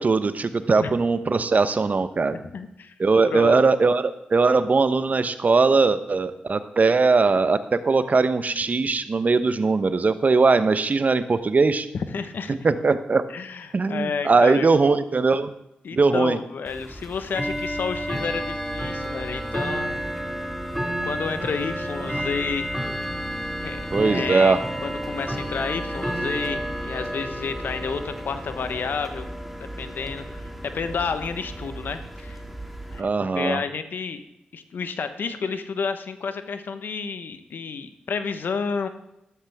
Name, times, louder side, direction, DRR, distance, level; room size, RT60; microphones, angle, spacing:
voice 1, 0.0-2.4 3.0-11.9 12.5-13.2 13.7-15.5 15.9-16.4 22.0-22.1 23.9-24.6 33.0-33.6, right 4 dB, 50° right, 12 dB, 1.0 m, -20 dB
voice 2, 2.3-2.9 3.2-3.6 12.1-12.6 13.3-14.7 15.8-20.0 21.0-22.7 23.6-24.5 24.8-29.3 29.8-32.4 32.9-34.2 34.5-38.9, left 5 dB, 70° left, 10 dB, 1.1 m, -30 dB
Bell / Tick-tock, 16.7-33.0, equal, 5° right, 2.0 m, -31 dB
13.0 x 13.0 x 3.6 m, 0.84 s
supercardioid pair, 40°, 4 cm